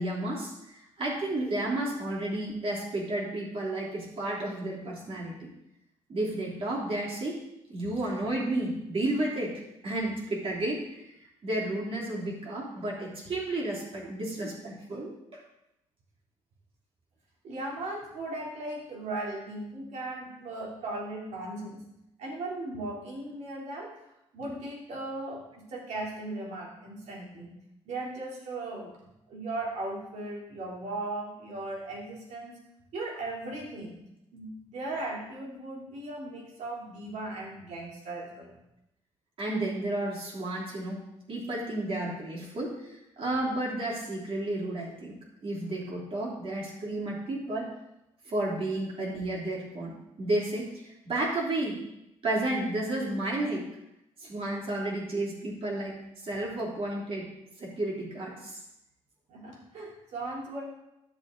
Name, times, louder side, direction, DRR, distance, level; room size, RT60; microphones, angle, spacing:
voice 1, 0.0-5.5 6.1-7.4 7.7-10.8 11.4-15.4 39.4-41.0 41.3-45.2 45.4-47.7 48.2-51.8 52.2-53.7 54.2-56.0 56.2-57.3 57.6-58.6, right 1 dB, 50° right, -4 dB, 3.3 m, -32 dB
voice 2, 17.4-21.8 22.2-23.9 24.3-27.5 27.8-28.9 29.3-32.6 32.9-34.0 34.3-38.6 59.3-60.6, right 2 dB, 75° right, -3 dB, 3.2 m, -37 dB
10.5 x 7.0 x 3.9 m, 0.87 s
cardioid pair, 90°, 12 cm